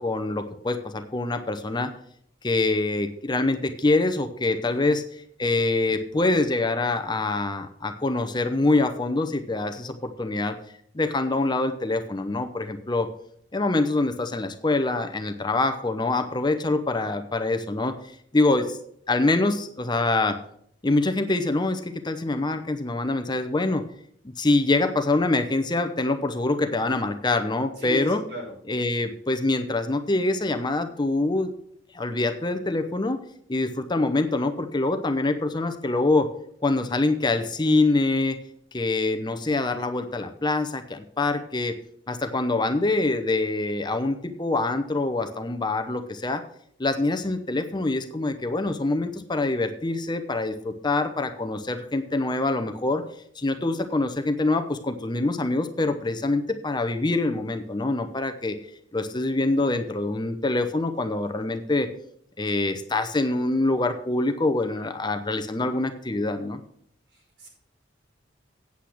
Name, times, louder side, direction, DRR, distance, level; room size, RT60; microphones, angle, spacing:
voice 1, 0.0-1.9 2.4-10.6 10.9-13.1 13.5-18.0 18.3-18.8 19.1-20.4 20.8-23.8 24.4-28.2 28.7-31.5 31.9-33.2 33.5-36.3 36.6-38.4 38.7-41.7 42.1-46.4 46.8-53.0 53.4-58.6 58.9-61.9 62.4-66.6, left 2 dB, 25° left, 8 dB, 0.7 m, -25 dB
voice 2, 67.1-67.5, left 3 dB, 70° right, -4 dB, 5.5 m, -36 dB
8.5 x 8.3 x 6.0 m, 0.67 s
head